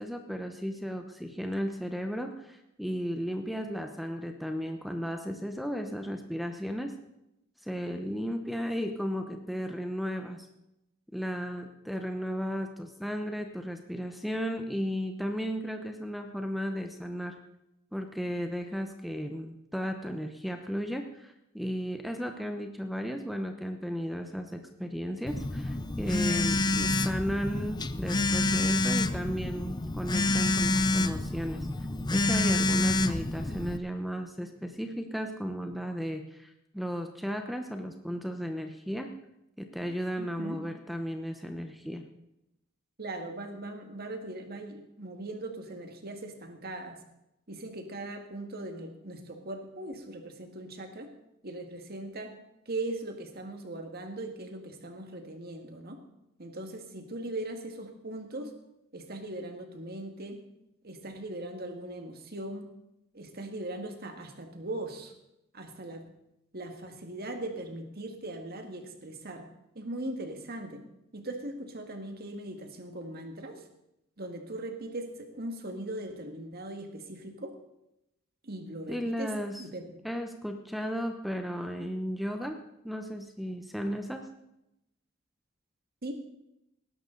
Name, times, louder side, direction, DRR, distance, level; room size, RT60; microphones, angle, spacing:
voice 1, 0.0-6.9 7.6-10.5 11.1-17.3 17.9-31.7 32.1-39.1 39.6-42.0 78.9-79.7 80.0-82.6 82.8-84.2, equal, ahead, 5 dB, 0.9 m, -35 dB
Telephone, 25.3-33.8, left 2 dB, 20° left, 0.5 m, -28 dB
voice 2, 40.2-40.6 43.0-47.0 47.5-51.1 51.4-52.3 52.7-56.0 56.4-58.5 58.9-60.4 60.8-62.7 63.1-65.1 65.5-66.0 66.5-69.5 69.8-70.8 71.1-73.6 74.2-77.5 78.4-79.3 79.6-80.0 86.0-86.1, right 2 dB, 50° right, 5 dB, 1.9 m, -39 dB
19.5 x 11.0 x 3.9 m, 0.85 s
head